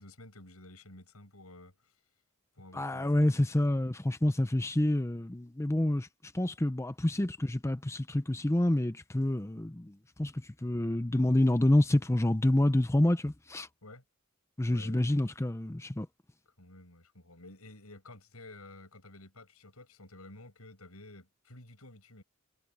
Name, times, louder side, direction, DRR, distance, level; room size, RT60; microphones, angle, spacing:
voice 1, 0.0-1.9 2.6-3.7 13.8-14.0 14.7-15.3 16.6-22.2, left 2 dB, 90° left, 7.8 m, -52 dB
voice 2, 2.7-6.1 6.3-13.7 14.6-16.1, left 1 dB, 15° left, 0.6 m, -28 dB
head